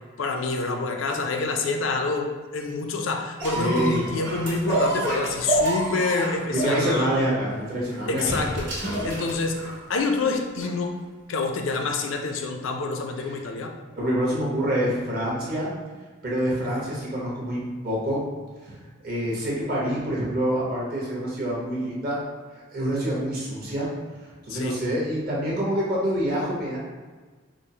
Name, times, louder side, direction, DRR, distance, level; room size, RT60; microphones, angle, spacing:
voice 1, 0.2-7.1 8.1-9.6 9.9-11.0 11.3-13.7 16.5-16.8 24.5-24.8, left 3 dB, 75° left, 4 dB, 0.4 m, -27 dB
sound 1, 3.4-9.9 10.6-10.7, right 1 dB, 70° right, 1.4 m, -28 dB
voice 2, 3.5-4.0 6.5-8.5 13.2-13.3 13.9-15.7 16.2-18.2 18.6-18.8 19.0-22.2 22.7-23.9 24.2-26.8, right 1 dB, 45° right, -6 dB, 1.0 m, -26 dB
5.0 x 2.0 x 2.7 m, 1.4 s
head